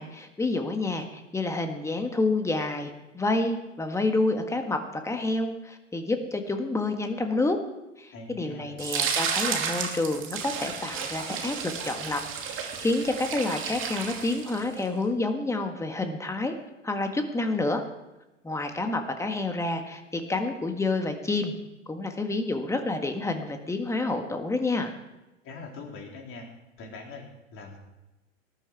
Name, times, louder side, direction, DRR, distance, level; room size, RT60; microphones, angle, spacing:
voice 1, 0.0-7.6 8.0-16.6 16.8-17.8 18.4-21.5 21.9-24.9, left 2 dB, 5° left, 6 dB, 1.6 m, -29 dB
voice 2, 8.1-8.8 25.4-26.5 26.8-27.8, left 3 dB, 35° left, 1 dB, 3.9 m, -42 dB
Excessive blood FX, 8.8-14.8, right 7 dB, 30° right, 2.5 m, -32 dB
19.5 x 11.0 x 4.7 m, 1.0 s
figure-of-eight pair, 100°, 38 cm